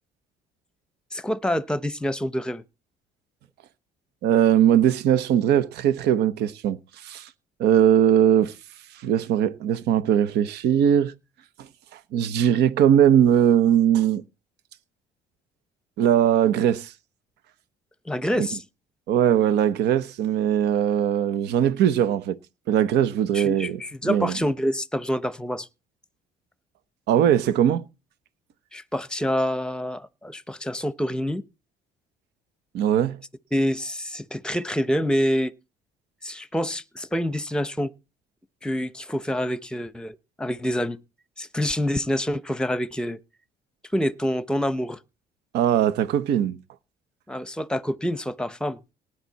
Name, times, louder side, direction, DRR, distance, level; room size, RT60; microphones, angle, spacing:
voice 1, 1.1-2.6 18.1-18.6 23.3-25.7 28.7-31.4 33.5-35.5 36.2-37.9 38.6-41.0 41.4-43.2 43.9-45.0 47.3-48.8, equal, 5° left, 1.0 m, -27 dB
voice 2, 4.2-7.3 7.6-8.5 8.9-11.1 11.6-14.2 16.0-16.9 18.4-18.5 19.1-22.4 22.7-24.4 27.1-27.8 32.7-33.2 45.5-46.6, right 10 dB, 80° right, 1.2 m, -20 dB
19.0 x 10.0 x 4.2 m
cardioid pair, 110°, 17 cm